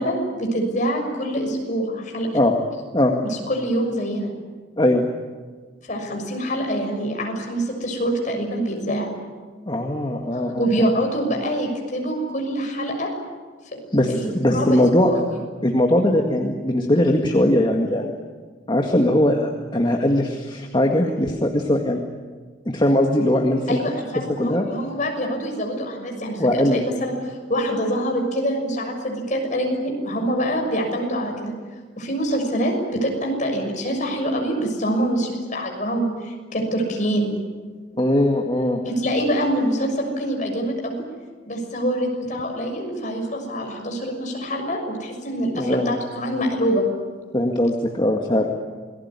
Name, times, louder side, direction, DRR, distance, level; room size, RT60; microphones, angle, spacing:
voice 1, 0.0-2.3 3.2-4.3 5.9-9.1 10.3-13.1 13.7-13.8 14.1-15.3 23.7-31.5 31.9-37.3 38.8-41.0 41.4-46.9, equal, 40° left, 2 dB, 6.5 m, -25 dB
voice 2, 9.7-10.7 13.9-15.1 15.6-18.2 18.7-22.0 22.7-23.8 24.4-24.7 26.4-26.8 38.0-38.8 45.5-45.9 47.3-48.5, left 1 dB, 25° left, 2 dB, 1.9 m, -20 dB
28.0 x 20.0 x 9.8 m, 1.5 s
head